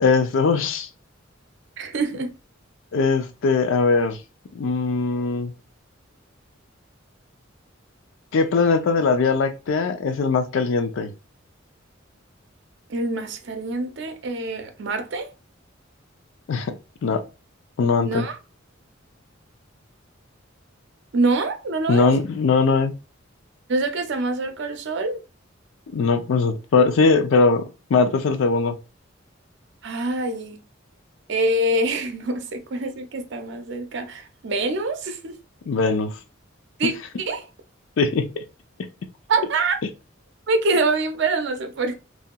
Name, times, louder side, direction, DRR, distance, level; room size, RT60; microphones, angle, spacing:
voice 1, 0.0-0.9 2.9-4.2 4.5-5.5 8.3-11.1 16.5-16.8 17.0-17.2 17.8-18.3 21.9-23.0 25.9-27.6 27.9-28.8 35.7-36.2 38.0-38.4, left 4 dB, 75° left, 0.4 m, -20 dB
voice 2, 1.8-2.3 12.9-15.3 18.0-18.4 21.1-22.1 23.7-25.2 29.8-30.6 31.3-35.3 36.8-36.9 37.2-37.5 39.3-39.8 40.5-41.9, right 2 dB, 65° right, 0.5 m, -25 dB
3.0 x 2.7 x 2.2 m
head